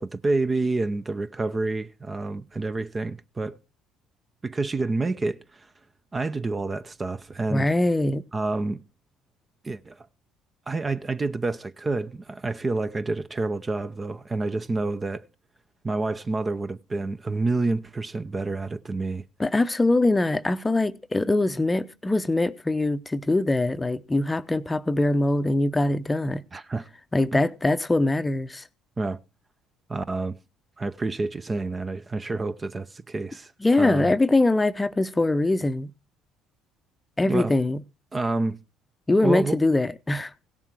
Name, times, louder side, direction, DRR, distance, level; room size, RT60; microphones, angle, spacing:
voice 1, 0.0-3.6 4.4-5.7 6.1-7.7 8.3-8.8 9.6-10.1 10.7-15.3 15.8-19.2 26.5-26.9 27.3-27.4 29.0-29.2 29.9-30.4 30.8-33.5 33.8-34.1 37.3-37.5 38.1-38.6 39.2-39.6, right 3 dB, 25° right, 0.6 m, -28 dB
voice 2, 7.5-8.2 19.4-26.4 27.1-28.6 33.6-35.9 37.2-37.8 39.1-40.3, left 2 dB, 15° left, 0.7 m, -23 dB
16.5 x 7.3 x 4.7 m
hypercardioid pair, 65°, 0 cm